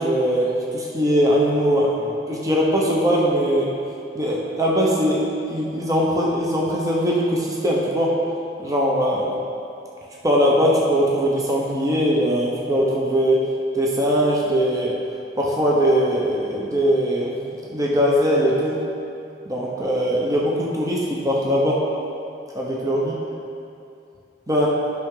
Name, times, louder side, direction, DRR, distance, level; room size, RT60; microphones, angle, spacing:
voice 1, 0.0-3.7 4.1-8.1 8.6-9.3 10.2-13.4 13.7-14.9 15.4-17.3 17.7-18.8 19.5-21.8 22.5-23.1 24.5-24.7, equal, 20° right, -4 dB, 0.9 m, -20 dB
10.5 x 5.9 x 3.8 m, 2.6 s
head